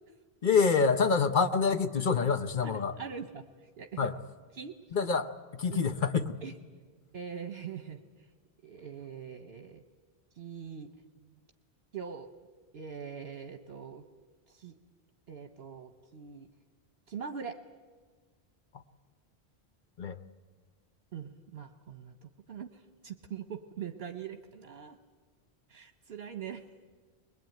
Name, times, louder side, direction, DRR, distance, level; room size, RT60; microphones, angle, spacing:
voice 1, 0.4-2.9 4.0-4.1 4.9-6.4 20.0-20.2, left 5 dB, 50° left, 9 dB, 1.0 m, -27 dB
voice 2, 2.6-4.1 4.5-4.7 5.7-5.8 6.4-6.5 7.1-8.0 8.6-9.8 10.4-10.9 11.2-11.3 11.9-12.3 12.7-14.0 14.5-14.8 15.3-16.5 17.1-17.6 21.1-25.0 25.7-26.7, right 7 dB, 70° right, 7 dB, 1.2 m, -42 dB
21.5 x 21.5 x 9.1 m, 1.5 s
omnidirectional pair, 1.1 m